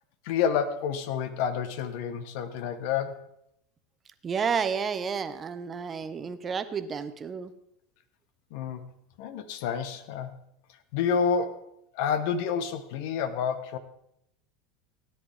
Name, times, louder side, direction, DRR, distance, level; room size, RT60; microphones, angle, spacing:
voice 1, 0.2-3.3 8.5-8.8 9.2-10.3 10.9-13.8, left 7 dB, 60° left, 10 dB, 1.2 m, -29 dB
voice 2, 4.2-7.5, right 6 dB, 30° right, 11 dB, 1.0 m, -31 dB
16.5 x 10.5 x 3.6 m, 0.76 s
hypercardioid pair, 80°, 0 cm